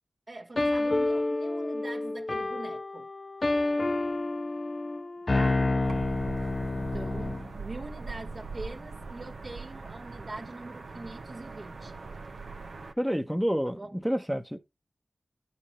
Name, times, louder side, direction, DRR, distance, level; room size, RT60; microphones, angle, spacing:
voice 1, 0.3-3.1 5.3-5.6 6.7-12.0 13.7-14.0, right 2 dB, 50° right, 1.4 m, -43 dB
sound 1, 0.6-7.5, left 2 dB, 45° left, 0.4 m, -29 dB
sound 2, 5.8-12.9, right 4 dB, 85° right, 1.1 m, -41 dB
voice 2, 13.0-14.6, equal, 5° right, 0.9 m, -29 dB
11.0 x 4.9 x 4.2 m
wide cardioid pair, 55°, 0 cm